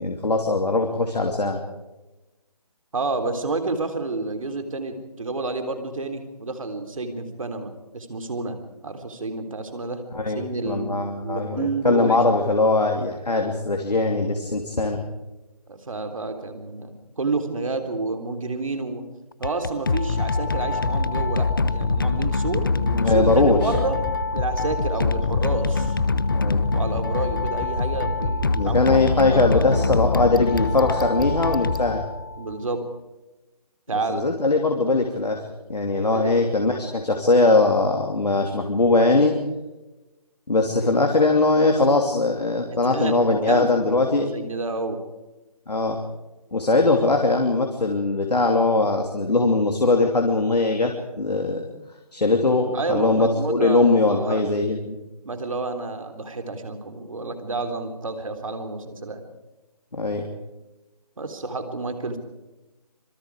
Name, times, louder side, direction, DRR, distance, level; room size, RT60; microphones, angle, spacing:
voice 1, 0.0-1.6 10.1-15.0 22.9-23.7 26.3-26.6 28.5-32.0 34.1-35.4 35.7-39.4 40.5-44.3 45.7-46.0 46.5-51.7 52.1-55.0 59.9-60.3, left 3 dB, 85° left, 3 dB, 2.9 m, -21 dB
voice 2, 2.9-8.6 8.8-10.0 10.3-12.2 15.7-19.0 19.4-24.0 24.3-26.0 26.7-29.0 29.3-29.9 32.4-32.8 33.9-34.2 36.1-36.3 42.9-45.0 52.7-54.4 55.3-59.2 61.2-62.2, right 3 dB, 55° right, 6 dB, 3.5 m, -30 dB
sound 1, 19.3-32.5, left 4 dB, 35° left, 0.6 m, -25 dB
sound 2, 20.4-31.9 32.2-32.3 32.5-32.6, equal, 5° left, 1.8 m, -31 dB
26.5 x 21.5 x 4.9 m, 1.1 s
figure-of-eight pair, 170°, 20 cm